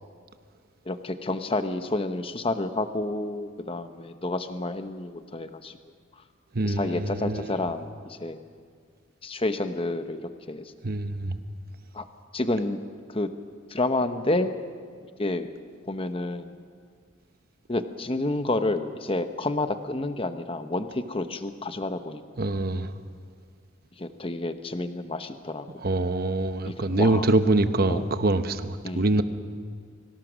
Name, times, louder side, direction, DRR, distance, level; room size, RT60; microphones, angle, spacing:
voice 1, 0.9-5.7 6.6-8.4 9.2-10.2 10.5-10.6 11.9-12.0 12.3-12.8 13.1-13.3 13.7-14.5 15.2-15.5 15.9-16.6 17.7-22.2 24.0-25.7 26.7-27.3 27.9-28.0 28.8-29.1, left 2 dB, 30° left, 0.9 m, -29 dB
voice 2, 6.5-7.6 10.8-11.4 22.4-22.9 25.8-29.2, right 2 dB, 50° right, 0.9 m, -24 dB
24.0 x 17.5 x 6.3 m
head